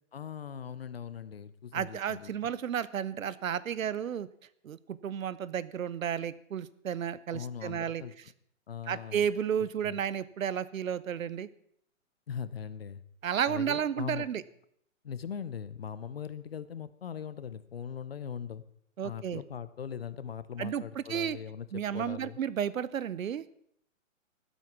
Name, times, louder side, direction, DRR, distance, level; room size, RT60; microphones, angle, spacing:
voice 1, 0.1-2.3 7.3-8.1 8.7-9.2 9.8-10.0 12.3-13.0 13.5-14.3 15.0-18.6 19.0-22.4, left 8 dB, 45° left, 16 dB, 0.9 m, -40 dB
voice 2, 1.7-4.3 4.6-8.0 8.9-11.5 13.2-14.4 19.0-19.4 20.6-21.4 21.7-23.5, right 8 dB, 80° right, 18 dB, 0.9 m, -32 dB
14.5 x 12.5 x 6.0 m, 0.68 s
hypercardioid pair, 175°, 40 cm